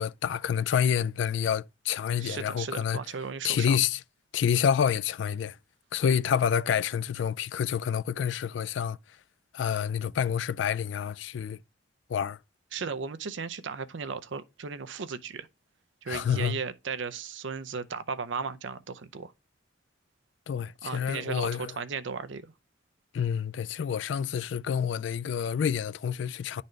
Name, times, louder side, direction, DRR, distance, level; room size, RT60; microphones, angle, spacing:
voice 1, 0.0-3.0 3.4-4.0 4.3-5.6 5.9-9.0 9.5-11.6 12.1-12.4 16.1-16.6 20.5-21.7 23.1-26.6, left 8 dB, 65° left, 0.3 m, -28 dB
voice 2, 2.2-3.8 12.7-15.5 16.0-19.3 20.8-22.5, right 5 dB, 70° right, 0.6 m, -36 dB
10.5 x 4.1 x 3.2 m
head